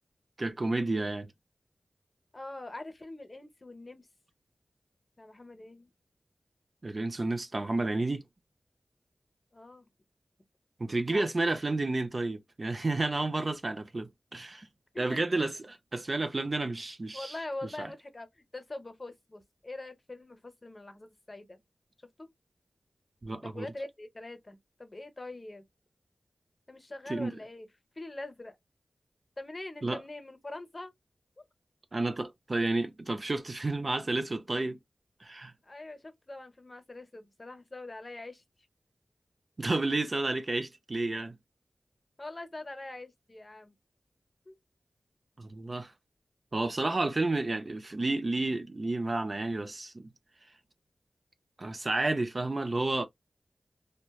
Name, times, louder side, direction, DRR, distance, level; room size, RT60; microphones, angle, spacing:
voice 1, 0.4-1.3 6.8-8.2 10.8-14.7 15.0-17.3 17.8-17.9 23.2-23.7 27.1-27.3 29.8-30.0 31.9-34.8 35.2-35.5 39.6-41.4 45.4-45.9 46.5-50.1 51.6-53.1, right 2 dB, 40° right, 0.4 m, -31 dB
voice 2, 2.3-4.1 5.2-5.9 9.5-9.9 11.1-11.5 14.9-15.2 17.1-21.6 22.2-22.3 23.4-25.6 26.7-27.7 28.0-28.6 29.4-30.9 31.4-31.5 35.6-38.4 42.2-43.7 44.5-44.6 46.8-47.1, left 2 dB, 35° left, 0.7 m, -43 dB
2.8 x 2.1 x 2.2 m
wide cardioid pair, 70°, 0 cm